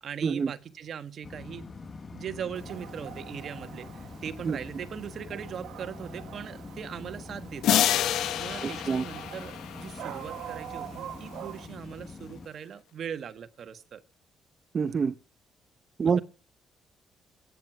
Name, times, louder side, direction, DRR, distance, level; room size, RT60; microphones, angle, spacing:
voice 1, 0.0-1.7 2.1-14.0 16.0-16.2, right 8 dB, 60° right, 1.4 m, -40 dB
sound 1, 1.2-12.5, left 4 dB, 35° left, 1.4 m, -44 dB
Dog, 2.5-11.7, right 11 dB, 75° right, 1.6 m, -45 dB
sound 2, 7.6-10.4, left 11 dB, 80° left, 1.1 m, -28 dB
voice 2, 8.6-9.0 14.7-15.1 16.0-16.2, right 6 dB, 40° right, 0.7 m, -26 dB
20.0 x 9.6 x 6.0 m
cardioid pair, 90°, 0 cm